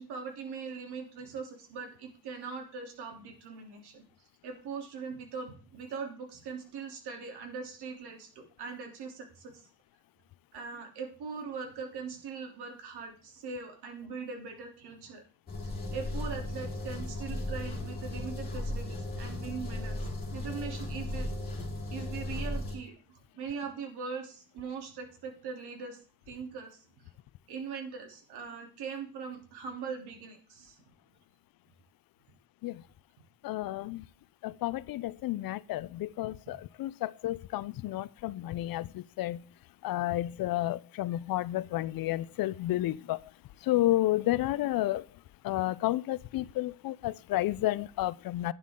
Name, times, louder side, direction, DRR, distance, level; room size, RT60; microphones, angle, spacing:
voice 1, 0.0-4.0 4.4-9.6 10.5-15.2 15.6-20.0 20.3-21.3 21.9-26.0 26.3-26.8 27.5-30.7, right 5 dB, 80° right, 3.0 m, -41 dB
sound 1, 15.5-22.8, left 1 dB, 25° left, 3.6 m, -36 dB
voice 2, 33.4-34.0 34.4-39.4 39.8-43.2 43.6-45.0 45.4-48.5, left 15 dB, 60° left, 0.5 m, -31 dB
11.5 x 9.4 x 3.7 m
cardioid pair, 155°, 39 cm